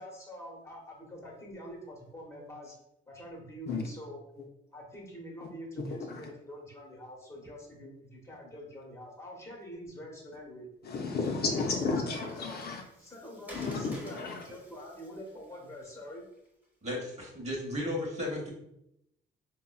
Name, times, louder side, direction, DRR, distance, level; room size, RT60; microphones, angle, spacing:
voice 1, 0.0-2.7 3.1-4.2 4.7-10.7 11.2-12.6 13.0-16.2, equal, 15° left, -2 dB, 1.0 m, -45 dB
voice 2, 10.8-12.8 13.5-14.4, left 4 dB, 55° left, 2 dB, 0.5 m, -32 dB
Water, 11.3-16.6, equal, 10° right, 0.9 m, -53 dB
voice 3, 16.8-18.5, left 1 dB, 35° right, -1 dB, 0.9 m, -34 dB
3.5 x 2.1 x 2.3 m, 0.80 s
cardioid pair, 90°, 20 cm